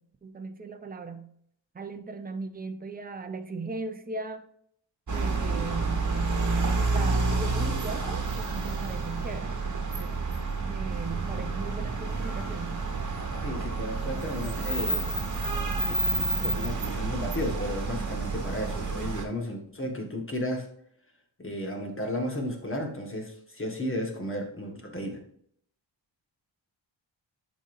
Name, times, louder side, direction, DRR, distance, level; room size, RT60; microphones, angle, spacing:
voice 1, 0.0-1.3 1.7-4.4 5.1-6.0 6.7-10.2 10.6-12.9, right 3 dB, 20° right, 6 dB, 0.7 m, -38 dB
sound 1, 5.1-19.2, right 3 dB, 40° right, 1.5 m, -29 dB
voice 2, 13.4-15.1 15.7-20.7 21.4-25.2, left 1 dB, 25° left, 2 dB, 1.7 m, -34 dB
11.5 x 5.3 x 2.7 m, 0.67 s
wide cardioid pair, 155°, 47 cm